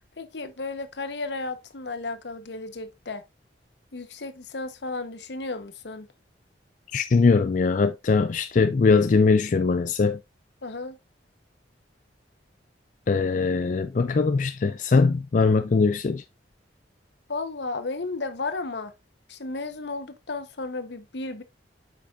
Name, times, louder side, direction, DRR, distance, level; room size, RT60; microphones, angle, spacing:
voice 1, 0.2-3.2 3.9-6.1 10.6-11.0 17.3-18.9 19.3-21.4, left 3 dB, 75° left, 0.9 m, -33 dB
voice 2, 6.9-10.2 13.1-16.2, left 4 dB, 45° left, 0.4 m, -21 dB
8.1 x 6.0 x 2.4 m
head